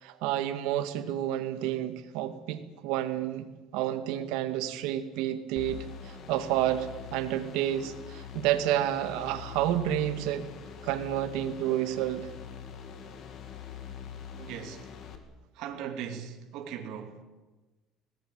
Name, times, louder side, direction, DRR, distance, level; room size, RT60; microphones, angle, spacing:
voice 1, 0.0-3.4 3.7-10.5 10.8-12.3, right 12 dB, 85° right, 2.1 m, -30 dB
sound 1, 5.6-15.2, left 8 dB, 45° left, 2.8 m, -44 dB
voice 2, 14.3-14.9 15.5-17.2, right 8 dB, 60° right, 3.0 m, -39 dB
23.0 x 19.0 x 9.0 m
cardioid pair, 175°, 0 cm